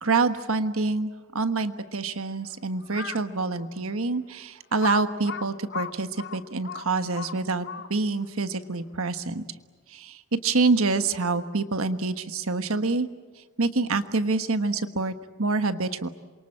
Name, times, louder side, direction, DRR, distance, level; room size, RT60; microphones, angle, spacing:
voice 1, 0.0-9.5 9.9-13.1 13.6-16.1, right 3 dB, 70° right, 10 dB, 1.3 m, -26 dB
Crow, 2.8-3.3 3.9-4.0 4.8-8.2, left 6 dB, 50° left, 0.8 m, -36 dB
27.5 x 23.5 x 8.7 m, 1.4 s
head